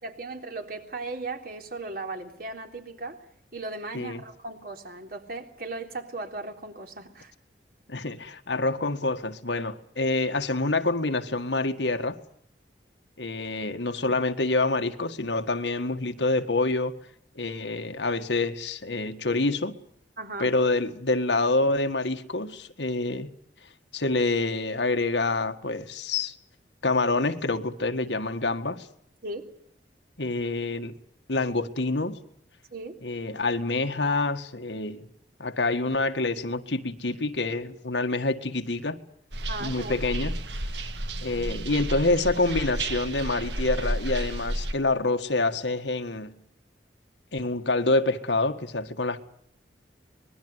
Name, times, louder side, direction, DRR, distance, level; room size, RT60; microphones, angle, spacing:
voice 1, 0.0-3.2 3.5-7.3 20.2-20.5 29.2-29.5 32.7-33.0 39.5-40.0, right 2 dB, 55° right, 3.6 m, -37 dB
voice 2, 7.9-12.2 13.2-16.9 17.4-19.8 20.4-23.3 23.9-26.3 26.8-28.9 30.2-31.0 31.3-32.2 33.0-35.1 35.4-39.0 39.6-40.4 40.7-40.8 41.2-46.3 47.3-49.2, left 2 dB, 80° left, 1.8 m, -27 dB
sound 1, 39.3-44.7, right 1 dB, 75° right, 1.9 m, -32 dB
25.5 x 21.5 x 8.1 m
head